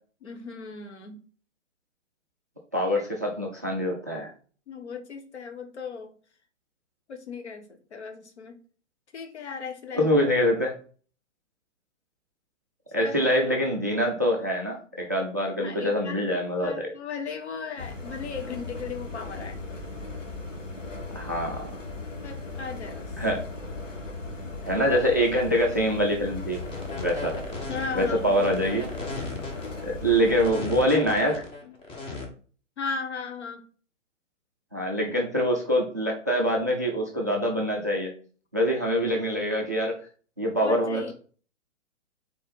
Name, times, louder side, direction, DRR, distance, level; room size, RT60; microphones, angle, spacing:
voice 1, 0.2-1.2 4.7-6.1 7.1-8.6 9.1-10.1 13.0-13.3 15.6-16.3 16.6-19.6 22.2-23.1 27.7-28.4 31.6-31.7 32.8-33.6 40.6-41.1, left 5 dB, 60° left, 5 dB, 1.4 m, -37 dB
voice 2, 2.7-4.3 9.9-10.7 12.9-16.9 21.1-21.7 23.2-23.4 24.7-26.6 27.0-27.4 27.9-28.9 29.8-31.4 34.7-38.1 38.5-39.9 40.4-41.1, equal, 15° right, -1 dB, 0.3 m, -25 dB
sound 1, 17.8-30.5, left 3 dB, 80° left, 1.6 m, -37 dB
sound 2, 26.5-32.2, left 3 dB, 15° left, 1.1 m, -36 dB
4.5 x 4.2 x 5.4 m, 0.41 s
figure-of-eight pair, 120°, 38 cm